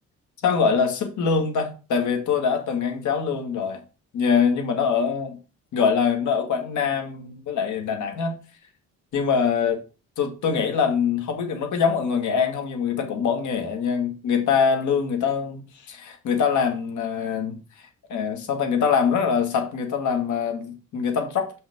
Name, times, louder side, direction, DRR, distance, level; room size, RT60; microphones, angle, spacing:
voice 1, 0.4-3.8 4.1-5.4 5.7-8.3 9.1-9.8 10.2-21.5, left 6 dB, 75° left, 1.7 m, -24 dB
6.4 x 5.4 x 3.5 m
cardioid pair, 90°, 30 cm